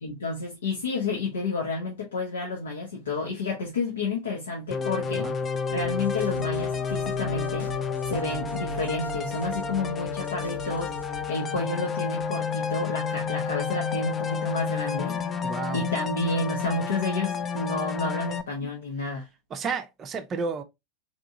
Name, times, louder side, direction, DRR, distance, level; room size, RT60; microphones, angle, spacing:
voice 1, 0.0-5.3 5.7-7.7 8.0-10.9 11.3-15.2 15.7-19.3, left 3 dB, 75° left, 0.9 m, -30 dB
sound 1, 4.7-18.4, left 5 dB, 25° left, 0.4 m, -30 dB
sound 2, 5.7-11.3, equal, 90° right, 0.3 m, -40 dB
voice 2, 15.4-15.8 19.5-20.6, right 5 dB, 30° right, 0.5 m, -31 dB
3.5 x 3.0 x 2.5 m
figure-of-eight pair, 85°, 0 cm